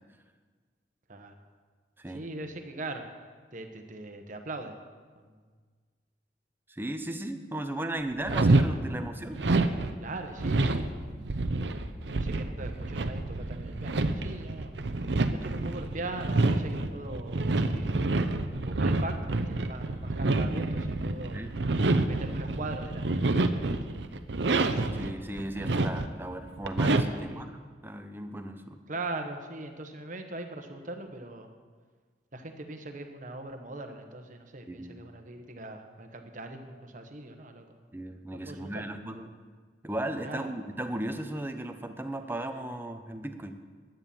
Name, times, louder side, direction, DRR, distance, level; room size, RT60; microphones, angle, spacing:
voice 1, 2.1-3.1 3.5-4.7 5.2-5.4 10.0-11.3 12.1-14.7 15.3-17.9 18.7-21.4 22.1-23.8 27.1-27.4 28.9-31.5 32.3-37.9 38.3-38.8 40.2-40.5, right 2 dB, 45° right, 5 dB, 1.2 m, -40 dB
voice 2, 6.7-9.4 9.7-9.9 10.5-10.9 21.3-21.5 24.9-28.8 34.7-35.0 37.9-39.3 39.8-43.6, right 1 dB, 10° right, 7 dB, 0.7 m, -36 dB
sound 1, 8.3-8.7 9.3-25.1 25.4-26.2 26.6-27.3, right 2 dB, 90° right, 0.7 m, -28 dB
11.0 x 9.0 x 7.1 m, 1.5 s
head